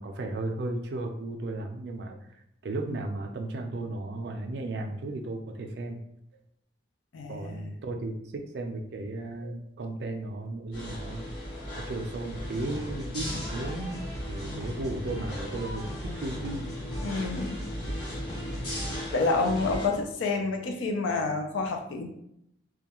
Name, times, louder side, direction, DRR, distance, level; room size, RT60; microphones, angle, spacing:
voice 1, 0.0-2.2 2.6-6.0 7.3-11.3 11.8-14.0 14.3-16.7, right 2 dB, 60° right, 4 dB, 0.4 m, -35 dB
voice 2, 7.1-7.7 17.0-17.6 18.4-18.5 19.1-22.1, left 3 dB, 85° left, 4 dB, 0.4 m, -29 dB
sound 1, 10.7-19.9, equal, 60° left, 1.1 m, -37 dB
sound 2, 12.4-20.0, equal, 20° left, 0.5 m, -39 dB
2.3 x 2.1 x 2.9 m, 0.76 s
head